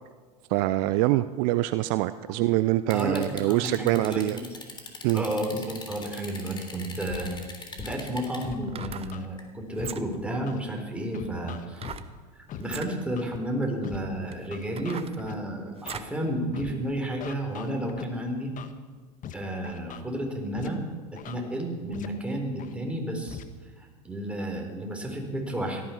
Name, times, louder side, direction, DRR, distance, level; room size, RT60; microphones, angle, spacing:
voice 1, 0.5-4.4 5.0-5.2, right 17 dB, 55° right, 14 dB, 0.6 m, -25 dB
sound 1, 2.9-8.4 9.4-9.5, left 3 dB, 20° left, 3.3 m, -42 dB
voice 2, 2.9-4.5 5.1-7.3 7.8-11.9 12.4-18.5 19.3-20.8 21.1-23.4 23.8-25.8, right 1 dB, 5° right, 1 dB, 4.0 m, -32 dB
Scratching (performance technique), 7.1-7.3 7.8-7.9 8.4-9.3 9.8-9.9 10.5-10.6 11.1-12.0 12.5-12.6 13.2-13.4 13.8-14.0 14.5-15.3 15.9-16.0 16.5-16.7 17.2-18.0 18.6-18.7 19.2-19.3 19.6-20.0 20.6-20.7 21.2-21.3 21.9-22.1 22.6-22.7 23.3-23.4, left 9 dB, 40° left, 1.4 m, -40 dB
sound 2, 8.6-9.2 9.7-10.3 11.8-12.1 12.6-12.9 13.7-13.8 14.3-16.2 16.6-16.7, right 8 dB, 30° right, 1.1 m, -40 dB
17.5 x 14.0 x 5.9 m, 1.4 s
hypercardioid pair, 85°, 21 cm